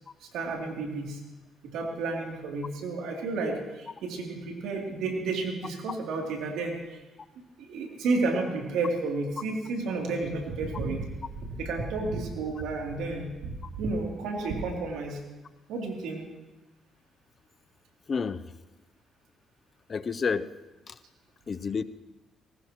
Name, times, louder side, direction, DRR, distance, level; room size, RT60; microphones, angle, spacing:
voice 1, 0.3-1.2 1.6-7.0 7.6-11.1 11.5-15.2 15.7-16.2, right 3 dB, 90° right, 0 dB, 2.9 m, -31 dB
voice 2, 18.1-18.4 19.9-20.5 20.9-21.0 21.5-21.8, left 5 dB, 40° left, 15 dB, 0.6 m, -29 dB
20.5 x 18.0 x 3.0 m, 1.1 s
cardioid pair, 90°, 0 cm